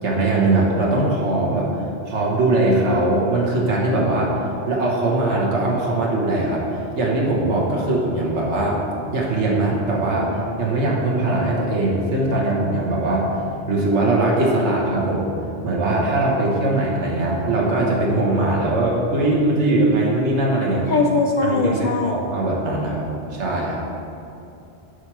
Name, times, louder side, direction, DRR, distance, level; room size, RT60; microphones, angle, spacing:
voice 1, 0.0-1.7 2.0-4.4 4.7-6.6 6.9-8.8 9.1-10.3 10.6-13.3 13.7-15.3 15.6-20.9 21.4-23.8, right 2 dB, 90° right, -3 dB, 1.5 m, -21 dB
voice 2, 20.9-22.2, left 3 dB, 55° left, 2 dB, 0.6 m, -20 dB
8.0 x 5.0 x 6.0 m, 2.7 s
omnidirectional pair, 1.1 m